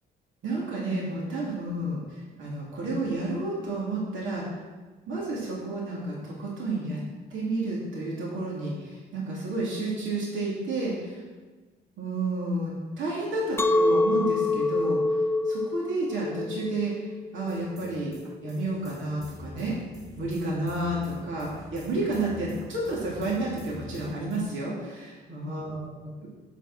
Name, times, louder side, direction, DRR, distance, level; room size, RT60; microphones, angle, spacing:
voice 1, 0.4-4.4 5.1-7.0 7.3-11.2 12.0-15.2 15.4-18.1 18.4-19.7 20.2-26.3, right 2 dB, 75° right, -4 dB, 2.6 m, -31 dB
Chink clink, 13.6-18.8, left 2 dB, 10° left, 0.6 m, -26 dB
sound 1, 17.5-24.5, left 1 dB, 20° right, 1.4 m, -46 dB
7.4 x 6.7 x 6.1 m, 1.3 s
cardioid pair, 90°, 20 cm